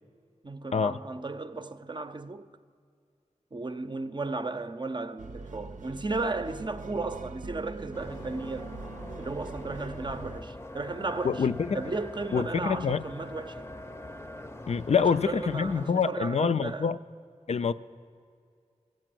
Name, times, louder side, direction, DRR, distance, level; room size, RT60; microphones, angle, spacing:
voice 1, 0.4-2.5 3.5-8.7 9.2-11.5 11.7-13.7 14.9-17.0, right 3 dB, 35° right, 0.6 m, -35 dB
sound 1, 5.2-10.4, right 3 dB, 85° right, 0.6 m, -42 dB
sound 2, 7.9-15.9, left 1 dB, 20° left, 0.6 m, -43 dB
voice 2, 11.2-11.8 12.3-13.0 14.7-17.0 17.5-17.7, left 6 dB, 55° left, 0.4 m, -26 dB
13.5 x 8.9 x 7.6 m
wide cardioid pair, 70°, 13 cm